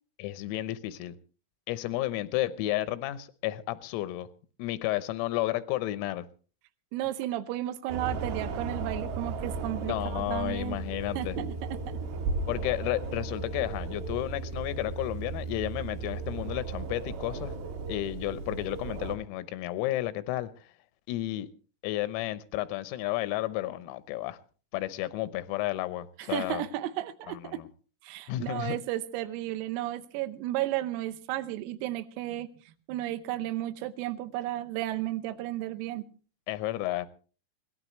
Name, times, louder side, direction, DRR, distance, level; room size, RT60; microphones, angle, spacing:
voice 1, 0.2-1.2 1.7-4.3 4.6-6.3 9.8-11.4 12.5-17.6 17.9-20.5 21.1-21.5 21.8-24.4 24.7-26.6 27.3-27.7 28.3-28.8 36.5-37.1, left 15 dB, 90° left, 3.7 m, -32 dB
voice 2, 6.9-10.8 11.2-12.0 26.2-27.6 28.0-36.0, right 14 dB, 85° right, 3.7 m, -33 dB
sound 1, 7.9-19.2, right 4 dB, 70° right, 4.5 m, -35 dB
22.5 x 17.5 x 3.1 m
omnidirectional pair, 6.0 m